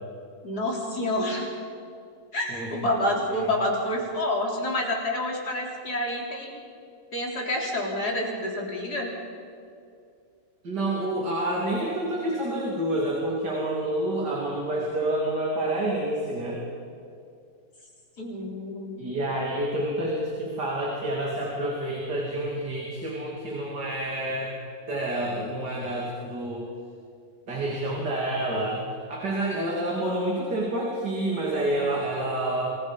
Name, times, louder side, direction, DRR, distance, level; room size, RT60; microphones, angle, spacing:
voice 1, 0.4-1.5 2.3-6.6 7.1-9.1 18.2-19.0, left 1 dB, 60° left, -1 dB, 4.4 m, -28 dB
voice 2, 10.6-16.6 19.0-24.5 24.9-26.7 27.5-32.8, right 1 dB, 65° right, -3 dB, 3.7 m, -28 dB
27.5 x 20.5 x 5.4 m, 2.4 s
omnidirectional pair, 2.0 m